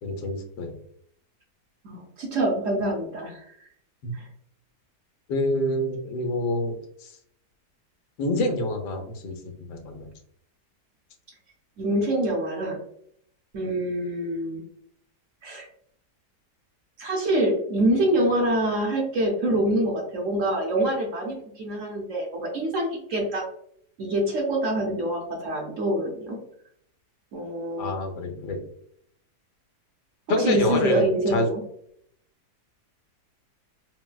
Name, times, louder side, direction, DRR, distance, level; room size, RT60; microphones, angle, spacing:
voice 1, 0.0-0.8 4.0-4.1 5.3-7.1 8.2-10.1 27.8-28.7 30.3-31.5, left 1 dB, 80° left, 4 dB, 1.3 m, -27 dB
voice 2, 1.8-3.4 4.1-4.3 11.8-12.8 13.5-14.6 15.4-15.7 17.0-23.4 24.0-26.4 27.3-27.9 30.4-31.6, right 1 dB, 60° right, 0 dB, 0.9 m, -25 dB
4.0 x 2.1 x 2.2 m, 0.69 s
omnidirectional pair, 1.8 m